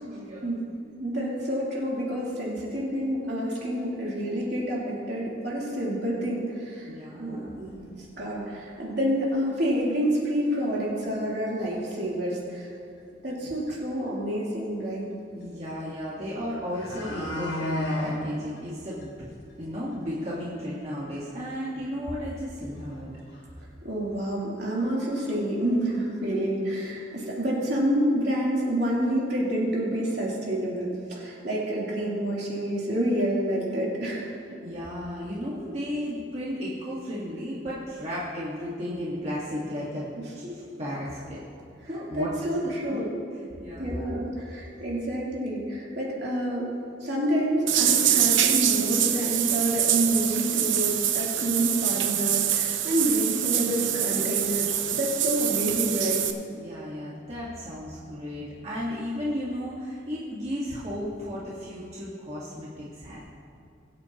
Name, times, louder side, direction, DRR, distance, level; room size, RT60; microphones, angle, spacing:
voice 1, 0.1-0.5 6.8-7.6 13.4-13.5 15.3-19.1 19.6-23.1 34.6-40.1 40.3-41.4 41.8-42.3 42.8-43.0 43.6-43.9 56.6-63.2, equal, 35° right, -7 dB, 1.5 m, -34 dB
voice 2, 1.0-6.9 7.2-7.8 8.1-12.7 13.2-15.1 23.8-34.6 42.1-43.1 43.8-46.7 47.0-56.2, right 1 dB, 60° right, -6 dB, 3.2 m, -28 dB
sound 1, 7.7-7.8 8.3-8.4 8.7-8.8 9.8-9.9 10.5-10.8 11.0-11.1 11.5-11.9 13.3-13.4 13.7-13.8 16.1-16.2 16.5-18.2 18.6-18.7 19.0-19.1 19.5-19.6 19.9-20.0 22.8-22.9 23.3-23.4 24.2-24.3 24.7-24.9 25.2-26.0 26.3-26.4, left 1 dB, 75° left, 3.1 m, -34 dB
sound 2, 47.7-56.3, right 10 dB, 80° right, 0.8 m, -25 dB
22.0 x 8.7 x 2.9 m, 2.5 s
head